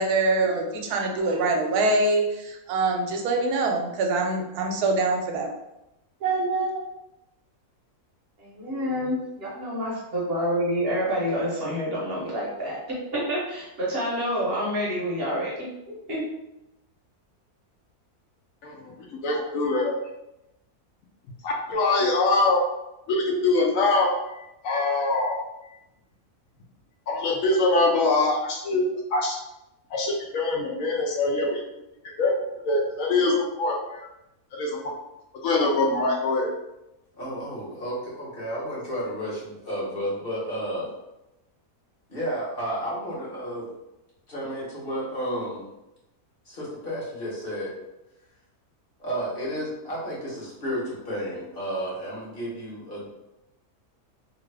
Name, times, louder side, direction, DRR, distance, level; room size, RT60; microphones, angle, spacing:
voice 1, 0.0-5.5 6.2-6.8, right 2 dB, 85° right, 2 dB, 1.1 m, -24 dB
voice 2, 8.4-16.2, equal, 50° right, -6 dB, 0.8 m, -28 dB
voice 3, 18.6-19.9 21.4-22.6 23.1-25.8 27.1-28.8 29.1-29.4 29.9-31.6 32.2-32.3 32.6-34.1 34.5-34.8 35.4-36.6, left 2 dB, 70° left, 0 dB, 0.9 m, -24 dB
voice 4, 37.1-40.9 42.1-43.7 44.3-45.6 46.5-47.7 49.0-53.1, equal, 40° left, -6 dB, 1.1 m, -32 dB
2.8 x 2.3 x 3.2 m, 0.92 s
omnidirectional pair, 1.6 m